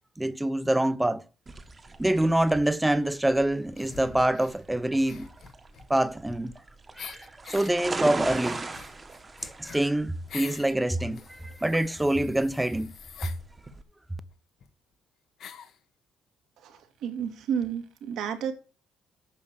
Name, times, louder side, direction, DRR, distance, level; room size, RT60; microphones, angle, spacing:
voice 1, 0.2-1.2 2.0-5.3 5.9-6.5 7.0-8.6 9.6-12.9, right 1 dB, 10° right, 1.0 m, -25 dB
sound 1, 1.5-13.8, right 3 dB, 25° right, 1.4 m, -39 dB
sound 2, 3.8-4.6 5.0-6.6 7.0-7.7 8.2-10.7 11.1-13.4 14.3-14.4 14.6-14.7 15.4-15.8, left 7 dB, 65° left, 1.6 m, -45 dB
voice 2, 16.6-18.5, right 8 dB, 75° right, 2.0 m, -31 dB
9.0 x 5.6 x 6.6 m
supercardioid pair, 75°, 0 cm